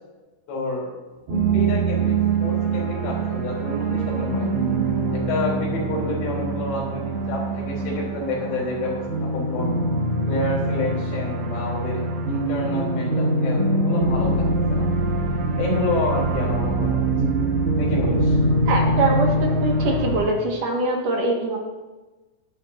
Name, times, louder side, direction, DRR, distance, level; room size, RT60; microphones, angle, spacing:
voice 1, 0.5-0.9 1.5-4.5 5.1-9.7 10.3-12.0 12.3-14.9 15.6-17.0 17.8-18.4, left 2 dB, 70° left, -3 dB, 6.2 m, -29 dB
sound 1, 1.3-20.2, right 2 dB, 85° right, 7.3 m, -23 dB
voice 2, 18.7-19.3 19.6-21.6, right 2 dB, 55° right, -1 dB, 2.7 m, -23 dB
20.0 x 11.0 x 2.8 m, 1.2 s
omnidirectional pair, 5.8 m